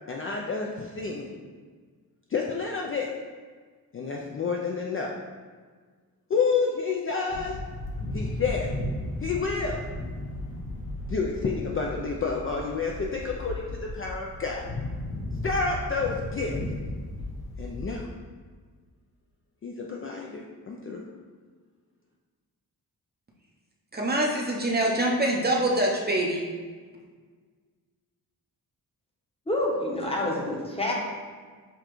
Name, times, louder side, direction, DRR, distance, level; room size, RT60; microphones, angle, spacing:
voice 1, 0.1-1.4 2.3-3.1 3.9-5.1 6.3-7.6 8.1-8.7 9.2-9.8 11.1-14.6 15.4-16.6 17.6-18.1 19.6-21.0, left 4 dB, 35° left, -1 dB, 0.4 m, -29 dB
sound 1, 7.3-18.0, left 1 dB, 75° left, 0.9 m, -35 dB
voice 2, 23.9-26.4, right 1 dB, 25° right, -2 dB, 0.6 m, -25 dB
voice 3, 29.5-30.9, left 1 dB, 15° left, -2 dB, 0.8 m, -27 dB
6.9 x 2.3 x 3.0 m, 1.5 s
wide cardioid pair, 100°, 37 cm